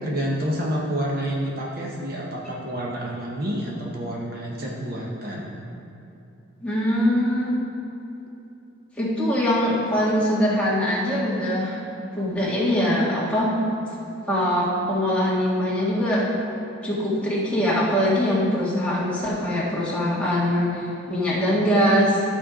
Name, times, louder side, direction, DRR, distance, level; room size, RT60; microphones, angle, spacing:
voice 1, 0.0-5.6, equal, 45° right, -2 dB, 0.9 m, -29 dB
voice 2, 6.6-7.6 9.0-11.8 12.1-13.5 14.3-16.2 16.8-20.7 21.1-22.1, equal, 5° left, -8 dB, 1.8 m, -22 dB
12.5 x 4.4 x 4.9 m, 2.9 s
head